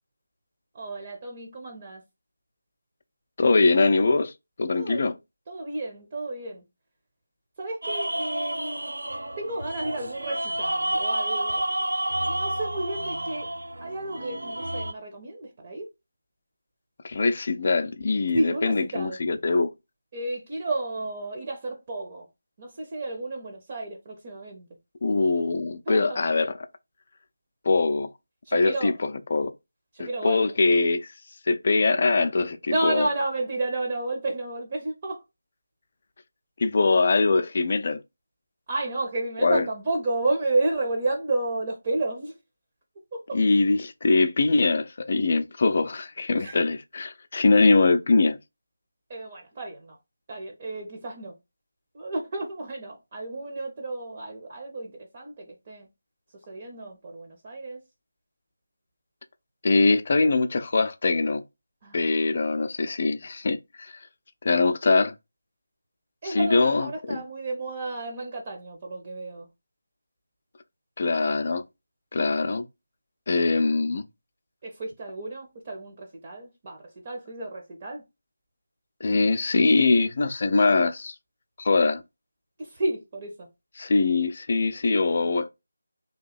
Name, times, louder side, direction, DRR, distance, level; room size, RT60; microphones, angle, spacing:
voice 1, 0.7-2.0 4.7-5.2 5.5-6.6 7.6-8.9 9.4-11.7 12.3-13.5 13.8-15.9 18.3-19.2 20.1-22.3 22.6-24.7 25.9-26.2 28.5-29.0 29.9-30.5 32.7-35.2 38.7-42.3 43.1-43.4 46.4-46.6 49.1-50.0 50.3-51.3 51.9-55.9 56.3-57.8 61.8-62.2 64.5-64.6 66.2-69.5 74.6-78.0 82.6-83.5, right 2 dB, 30° right, 0.6 m, -31 dB
voice 2, 3.4-4.3 4.6-5.1 17.0-19.7 25.0-26.5 27.7-28.1 28.5-29.5 30.0-31.1 31.5-33.1 36.6-38.0 39.4-39.6 43.3-48.4 59.6-61.4 61.9-64.0 64.4-65.1 66.2-67.2 71.0-71.6 72.1-72.7 73.3-74.1 79.0-81.2 81.6-82.0 83.8-85.5, left 3 dB, 40° left, 0.4 m, -22 dB
sound 1, 7.8-14.9, right 1 dB, 65° right, 0.4 m, -30 dB
2.9 x 2.6 x 3.8 m
figure-of-eight pair, 160°, 0 cm